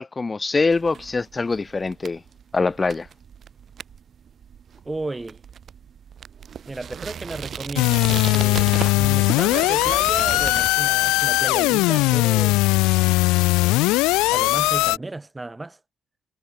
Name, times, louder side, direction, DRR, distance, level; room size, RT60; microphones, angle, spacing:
voice 1, 0.0-2.2 2.5-3.1, left 3 dB, 30° left, 1.7 m, -23 dB
sound 1, 0.7-10.7, right 8 dB, 55° right, 5.7 m, -36 dB
voice 2, 4.8-5.4 6.7-12.6 13.6-14.0 14.3-15.8, right 2 dB, 20° right, 3.1 m, -34 dB
sound 2, 7.8-15.0, left 22 dB, 85° left, 0.4 m, -19 dB
hypercardioid pair, 50°, 0 cm